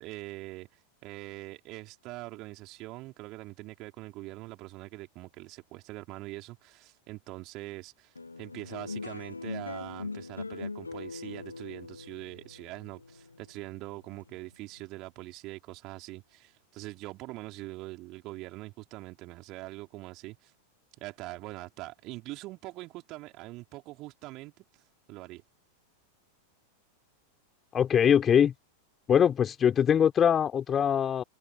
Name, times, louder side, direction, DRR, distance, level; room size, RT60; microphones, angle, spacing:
voice 1, 0.0-20.5 21.0-24.6 25.1-25.4, right 20 dB, 40° right, 4.7 m, -43 dB
sound 1, 8.1-14.8, left 3 dB, 80° left, 1.9 m, -41 dB
voice 2, 27.7-28.5 29.1-31.2, left 8 dB, 25° left, 3.8 m, -22 dB
figure-of-eight pair, 90°, 0 cm